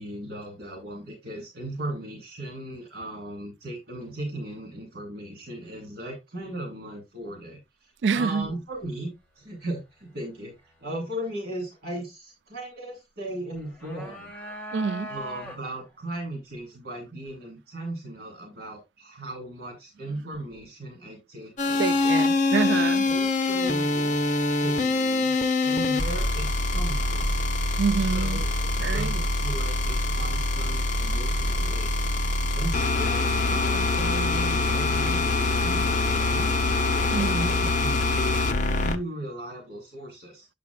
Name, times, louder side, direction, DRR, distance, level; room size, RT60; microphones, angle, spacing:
voice 1, 0.0-9.1 9.4-14.3 15.1-21.9 22.5-25.3 25.6-27.3 28.0-31.9 32.5-36.5 37.1-40.5, right 1 dB, 60° right, 2.7 m, -37 dB
voice 2, 8.0-8.5 14.7-15.1 21.8-23.1 27.8-28.4 28.8-29.2 37.1-37.4, right 5 dB, 80° right, 0.4 m, -26 dB
sound 1, 13.6-15.9, equal, 10° left, 1.9 m, -39 dB
sound 2, 21.6-39.0, left 2 dB, 45° left, 0.9 m, -24 dB
8.4 x 7.5 x 2.3 m
head